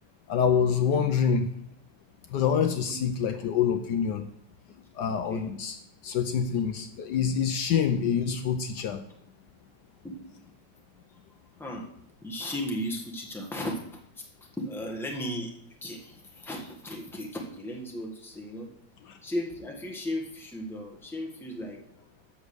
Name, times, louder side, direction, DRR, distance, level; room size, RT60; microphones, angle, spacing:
voice 1, 0.3-1.5 2.3-4.2 4.9-5.8 6.0-9.0 19.0-19.2, left 7 dB, 70° left, 8 dB, 1.2 m, -26 dB
voice 2, 12.2-14.0 14.6-15.5 15.8-18.7 19.2-21.8, left 1 dB, ahead, 1 dB, 1.3 m, -35 dB
8.3 x 6.4 x 6.7 m, 0.70 s
omnidirectional pair, 2.0 m